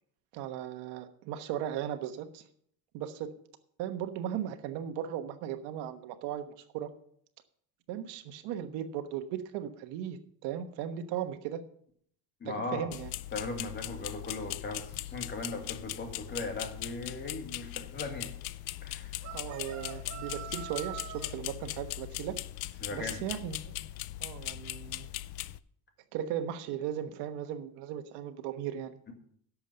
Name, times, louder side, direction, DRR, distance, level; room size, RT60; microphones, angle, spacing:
voice 1, 0.3-2.4 2.9-3.3 3.8-6.9 7.9-11.6 12.4-13.1 19.3-22.4 22.9-23.7 24.2-25.1 26.1-28.9, right 10 dB, 90° right, 9 dB, 1.3 m, -37 dB
voice 2, 12.4-12.9 13.3-18.3 18.8-19.1 22.8-23.2, left 3 dB, 25° left, 4 dB, 2.0 m, -38 dB
sound 1, 12.9-25.6, left 16 dB, 70° left, 0.6 m, -40 dB
sound 2, 19.2-21.3, right 10 dB, 45° right, 1.4 m, -43 dB
11.0 x 7.1 x 6.8 m, 0.65 s
cardioid pair, 160°, 39 cm